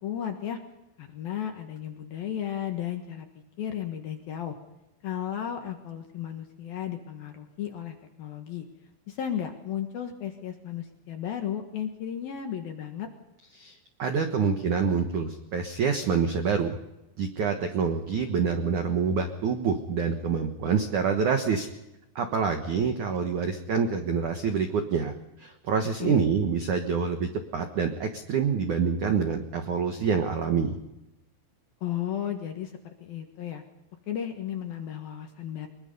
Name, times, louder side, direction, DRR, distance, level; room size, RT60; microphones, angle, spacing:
voice 1, 0.0-0.6 1.0-3.3 3.6-4.6 5.0-8.7 9.1-13.1 26.0-26.2 31.8-32.7 33.0-33.6 34.1-35.7, left 10 dB, 65° left, 5 dB, 2.6 m, -34 dB
voice 2, 13.6-16.8 17.2-21.7 22.2-30.8, right 6 dB, 75° right, 5 dB, 1.8 m, -27 dB
23.5 x 22.0 x 5.5 m, 0.92 s
omnidirectional pair, 5.8 m